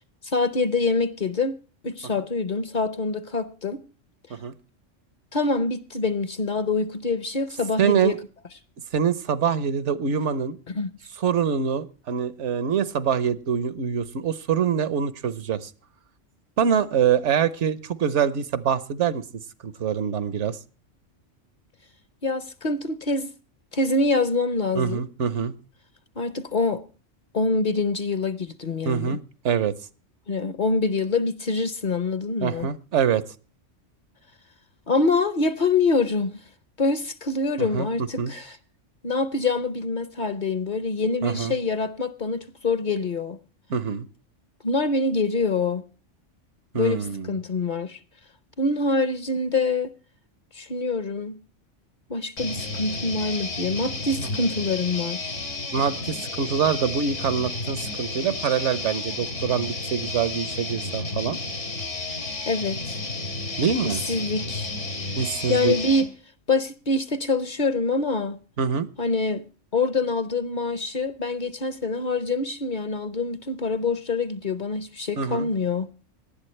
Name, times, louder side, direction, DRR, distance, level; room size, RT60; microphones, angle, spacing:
voice 1, 0.2-1.6 1.8-3.8 5.3-8.2 10.7-10.9 22.2-23.3 23.7-25.0 26.2-26.8 27.3-29.2 30.3-32.7 34.9-36.3 36.8-38.6 39.0-43.4 44.6-45.8 46.7-48.0 48.6-49.9 50.5-51.4 52.1-55.4 62.5-63.0 63.8-64.7 65.5-66.1 66.5-68.4 69.0-69.4 69.7-75.9, left 3 dB, 45° left, 0.8 m, -25 dB
voice 2, 7.8-8.2 8.9-10.6 11.2-15.7 16.6-19.2 19.6-20.6 24.7-25.5 28.8-29.2 29.4-29.7 32.4-33.2 37.6-37.9 38.2-38.3 41.2-41.5 43.7-44.1 46.7-47.3 55.7-61.4 63.6-64.0 65.2-65.7 68.6-68.9 75.2-75.5, right 7 dB, 75° right, 1.2 m, -24 dB
sound 1, 52.4-66.1, left 2 dB, 80° left, 2.6 m, -32 dB
18.5 x 11.5 x 3.2 m
omnidirectional pair, 1.3 m